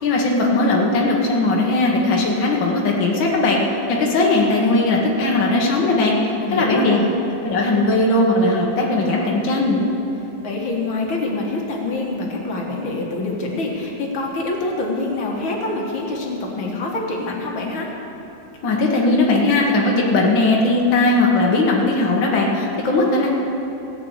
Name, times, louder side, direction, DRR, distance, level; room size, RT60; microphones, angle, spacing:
voice 1, 0.0-3.6 3.9-7.0 7.4-9.8 18.6-23.3, left 2 dB, 80° left, -2 dB, 1.0 m, -18 dB
voice 2, 6.4-7.0 10.4-17.9, left 2 dB, 50° left, -1 dB, 1.5 m, -25 dB
17.0 x 5.9 x 8.2 m, 2.9 s
omnidirectional pair, 4.2 m